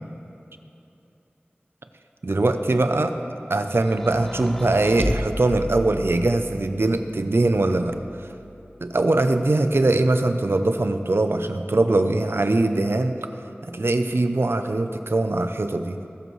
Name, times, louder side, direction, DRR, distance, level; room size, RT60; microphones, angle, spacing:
voice 1, 2.2-3.2 3.5-7.9 8.8-13.3 13.7-16.0, right 2 dB, 70° right, 8 dB, 0.6 m, -22 dB
sound 1, 3.8-6.5 7.4-8.4, equal, 5° left, 0.6 m, -32 dB
18.5 x 7.9 x 3.2 m, 2.8 s
wide cardioid pair, 45°, 4 cm